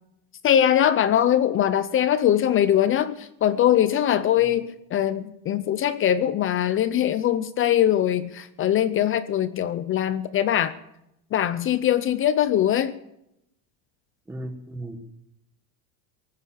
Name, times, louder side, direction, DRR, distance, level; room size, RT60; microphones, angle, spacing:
voice 1, 0.4-10.7 11.3-12.9, left 10 dB, 30° left, 15 dB, 0.5 m, -22 dB
voice 2, 14.3-15.0, right 1 dB, 5° right, 6 dB, 1.5 m, -35 dB
18.0 x 9.7 x 7.3 m, 0.82 s
supercardioid pair, 145°, 46 cm